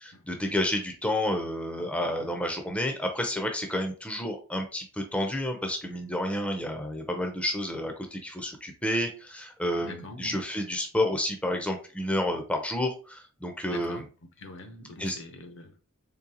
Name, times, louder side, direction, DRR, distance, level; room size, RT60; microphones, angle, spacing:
voice 1, 0.0-14.0 15.0-15.2, left 1 dB, 5° left, 0.5 m, -30 dB
voice 2, 9.8-10.4 13.7-14.1 14.4-15.8, left 2 dB, 60° left, 0.7 m, -44 dB
3.8 x 3.2 x 2.8 m
head